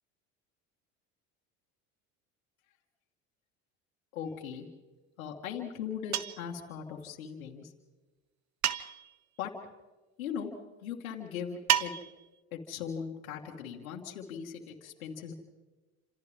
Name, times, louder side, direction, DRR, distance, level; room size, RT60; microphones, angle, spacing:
voice 1, 4.1-4.7 5.2-7.7 9.4-9.5 10.2-10.5 10.8-11.9 12.5-15.3, left 7 dB, 90° left, -1 dB, 2.3 m, -39 dB
sound 1, 6.1-6.5 8.6-9.2 11.7-12.3, right 10 dB, 45° right, 1.0 m, -30 dB
29.0 x 27.5 x 3.7 m, 1.2 s
hypercardioid pair, 75°, 40 cm